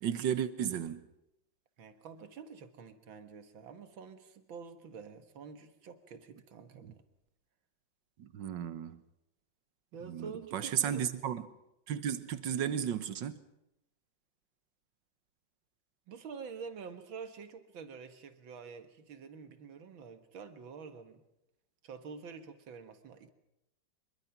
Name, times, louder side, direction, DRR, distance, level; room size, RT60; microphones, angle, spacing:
voice 1, 0.0-1.1 6.8-6.9 8.2-9.0 10.0-11.5 11.9-13.4, right 9 dB, 75° right, 1.8 m, -34 dB
voice 2, 1.8-7.0 9.9-11.1 16.1-21.2 21.8-23.3, right 5 dB, 90° right, 2.3 m, -47 dB
25.0 x 22.5 x 5.9 m
omnidirectional pair, 2.1 m